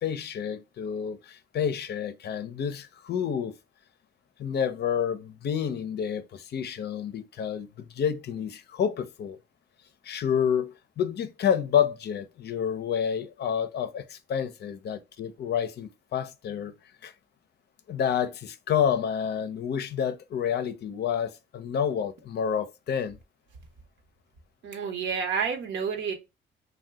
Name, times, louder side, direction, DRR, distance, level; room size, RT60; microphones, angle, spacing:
voice 1, 0.0-3.5 4.4-9.4 10.0-16.7 17.0-17.1 17.9-23.2, left 8 dB, 55° left, 0.5 m, -29 dB
voice 2, 24.6-26.1, right 6 dB, 75° right, 0.9 m, -29 dB
2.7 x 2.2 x 3.3 m
cardioid pair, 90°, 20 cm